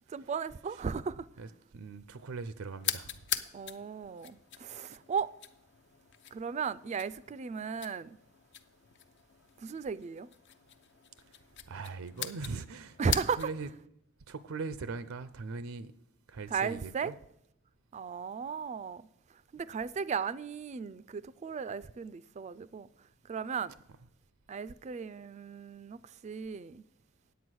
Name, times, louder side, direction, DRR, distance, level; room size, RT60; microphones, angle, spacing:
voice 1, 0.1-1.3 3.5-5.3 6.3-8.2 9.6-10.3 13.0-13.5 16.5-17.1 17.9-19.1 19.5-22.9 23.3-23.7 24.5-26.8, right 6 dB, 35° right, 0.3 m, -35 dB
voice 2, 1.4-3.2 11.3-11.4 11.7-13.7 14.3-15.9 16.3-17.2, right 4 dB, 85° right, 0.5 m, -41 dB
sound 1, 2.8-13.7, left 9 dB, 60° left, 0.7 m, -42 dB
9.3 x 8.2 x 6.2 m
head